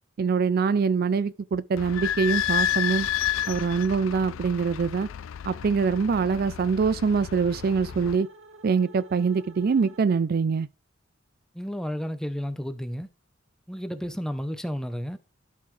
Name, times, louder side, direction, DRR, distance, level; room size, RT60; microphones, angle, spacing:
voice 1, 0.2-3.1 3.5-5.1 5.5-8.3 8.6-10.7, right 5 dB, 50° right, 0.4 m, -24 dB
Idling / Squeak, 1.7-8.2, left 11 dB, 75° left, 0.4 m, -31 dB
sound 1, 6.2-10.4, right 2 dB, 75° right, 1.7 m, -52 dB
voice 2, 11.5-13.1 13.7-15.2, equal, 5° left, 0.7 m, -32 dB
12.0 x 5.5 x 3.2 m
head